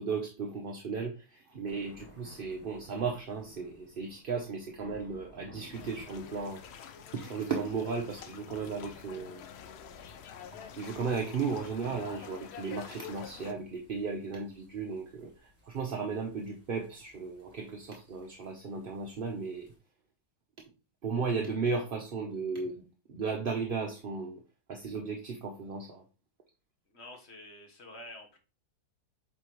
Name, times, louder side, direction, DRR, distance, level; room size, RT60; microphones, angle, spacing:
voice 1, 0.0-6.6 7.1-9.4 10.8-19.7 21.0-22.8 23.1-24.4 24.7-26.0, right 5 dB, 45° right, 0.8 m, -35 dB
sound 1, 1.6-19.8, left 2 dB, 10° left, 2.4 m, -59 dB
sound 2, 5.7-13.5, left 7 dB, 65° left, 0.6 m, -47 dB
voice 2, 26.9-28.4, left 1 dB, 45° left, 1.5 m, -48 dB
8.1 x 4.2 x 3.1 m
omnidirectional pair, 1.7 m